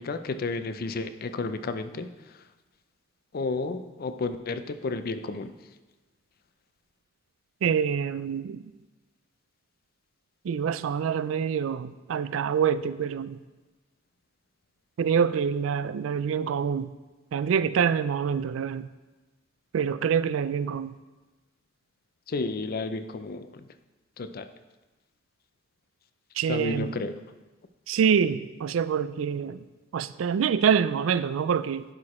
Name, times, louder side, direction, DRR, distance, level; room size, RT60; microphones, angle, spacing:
voice 1, 0.0-2.4 3.3-5.5 22.3-23.7 24.2-24.5 26.5-27.2, left 3 dB, 50° left, 11 dB, 0.5 m, -32 dB
voice 2, 7.6-8.6 10.4-13.4 15.0-16.9 17.3-18.9 19.7-21.0 26.4-26.9 27.9-29.6 29.9-31.8, right 7 dB, 85° right, 15 dB, 0.3 m, -26 dB
11.0 x 4.9 x 4.2 m, 1.2 s
head